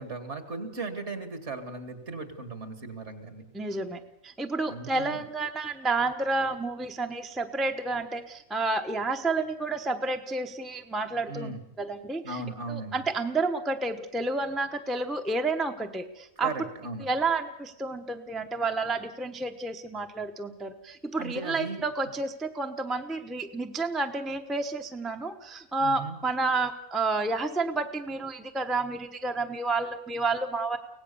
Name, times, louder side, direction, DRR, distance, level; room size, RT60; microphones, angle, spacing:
voice 1, 0.0-3.4 4.6-5.2 11.3-11.6 12.2-13.0 16.4-17.1 21.2-21.8 25.8-26.2, right 3 dB, 55° right, 8 dB, 2.6 m, -37 dB
voice 2, 3.5-16.5 17.0-30.8, right 3 dB, ahead, 5 dB, 0.9 m, -30 dB
24.5 x 18.0 x 7.0 m, 0.83 s
omnidirectional pair, 1.4 m